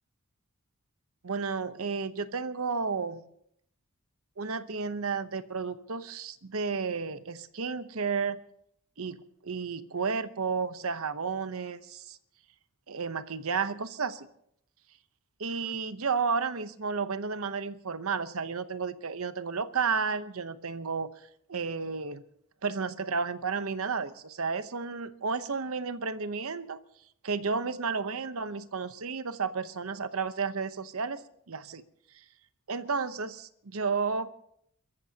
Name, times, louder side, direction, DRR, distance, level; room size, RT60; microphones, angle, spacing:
voice 1, 1.2-3.2 4.4-8.4 9.0-12.2 12.9-14.3 15.4-21.1 21.5-22.2 22.6-26.8 27.2-31.8 32.1-32.2 32.7-34.3, right 5 dB, 70° right, 12 dB, 0.9 m, -32 dB
30.0 x 14.0 x 2.9 m, 0.70 s
head